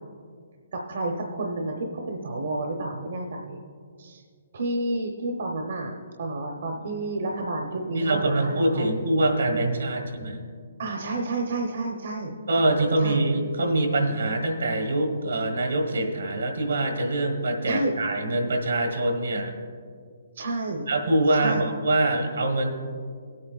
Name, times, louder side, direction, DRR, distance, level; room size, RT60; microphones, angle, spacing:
voice 1, 0.7-3.6 4.0-4.2 4.5-8.9 10.8-12.3 13.0-13.2 17.7-17.9 20.3-20.9 21.3-21.6, right 2 dB, 70° right, 1 dB, 0.9 m, -30 dB
voice 2, 7.9-10.4 12.5-19.5 20.9-22.7, right 1 dB, 85° right, 3 dB, 1.5 m, -24 dB
18.5 x 8.5 x 2.4 m, 2.1 s
hypercardioid pair, 150°, 0 cm